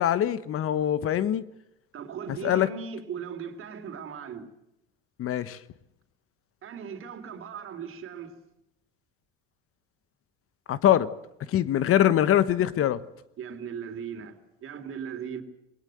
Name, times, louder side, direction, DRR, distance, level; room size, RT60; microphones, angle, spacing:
voice 1, 0.0-1.4 2.4-2.7 5.2-5.6 10.7-11.1 11.5-13.0, left 11 dB, 50° left, 1.2 m, -23 dB
voice 2, 1.9-4.5 6.6-8.4 13.4-15.4, right 7 dB, 45° right, 3.5 m, -38 dB
21.5 x 19.0 x 7.9 m
supercardioid pair, 80°, 29 cm